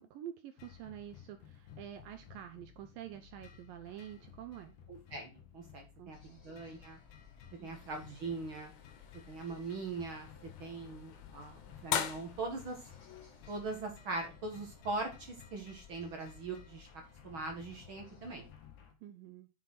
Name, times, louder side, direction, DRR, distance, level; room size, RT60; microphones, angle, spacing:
voice 1, 0.0-4.8 6.0-6.4 7.6-7.7 19.0-19.5, right 11 dB, 80° right, 8 dB, 2.0 m, -48 dB
sound 1, 0.6-18.9, left 8 dB, 60° left, 3.0 m, -57 dB
voice 2, 4.9-6.2 6.4-7.0 7.6-8.7 9.3-10.3 10.6-12.8 13.5-16.9 17.2-18.5, right 3 dB, 60° right, 2 dB, 1.3 m, -41 dB
sound 2, 6.1-18.5, left 6 dB, 20° left, 1.7 m, -59 dB
sound 3, 7.7-14.2, left 10 dB, 90° left, 3.5 m, -43 dB
7.5 x 6.7 x 5.7 m, 0.30 s
omnidirectional pair, 4.9 m